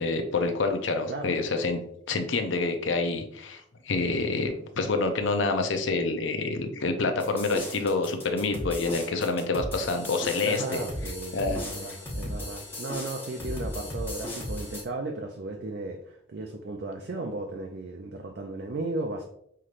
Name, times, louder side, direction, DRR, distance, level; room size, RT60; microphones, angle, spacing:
voice 1, 0.0-1.8 2.1-10.8 11.3-11.6, left 3 dB, 75° left, 6 dB, 0.6 m, -27 dB
sound 1, 7.2-14.8, left 1 dB, 10° left, 1.0 m, -36 dB
voice 2, 10.4-19.2, right 2 dB, 60° right, 2 dB, 0.4 m, -35 dB
5.7 x 3.2 x 2.4 m, 0.71 s
head